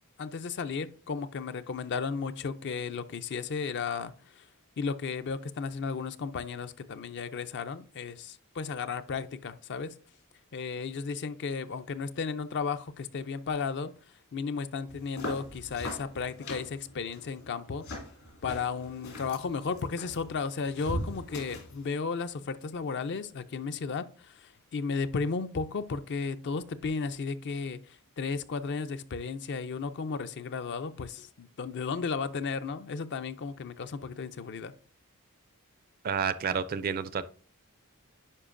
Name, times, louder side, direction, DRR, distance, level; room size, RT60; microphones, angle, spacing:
voice 1, 0.2-4.5 4.8-9.9 10.5-13.9 14.3-17.9 18.4-34.7, left 5 dB, 55° left, 0.5 m, -34 dB
sound 1, 14.9-21.9, left 1 dB, 75° left, 2.8 m, -41 dB
voice 2, 36.0-37.2, right 6 dB, 40° right, 0.4 m, -30 dB
9.9 x 5.0 x 2.5 m
head